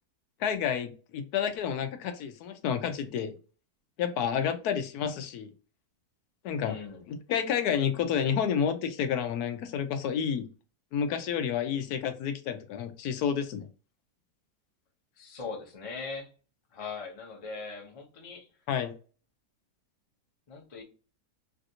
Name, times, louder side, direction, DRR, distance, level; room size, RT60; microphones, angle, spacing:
voice 1, 0.4-3.3 4.0-5.5 6.4-6.7 7.1-10.5 10.9-13.7 18.7-18.9, left 8 dB, 80° left, 8 dB, 1.1 m, -30 dB
voice 2, 6.6-7.0 15.2-16.3 16.7-18.5 20.5-20.8, left 4 dB, 35° left, 1 dB, 0.6 m, -40 dB
3.3 x 2.5 x 2.7 m, 0.36 s
omnidirectional pair, 1.6 m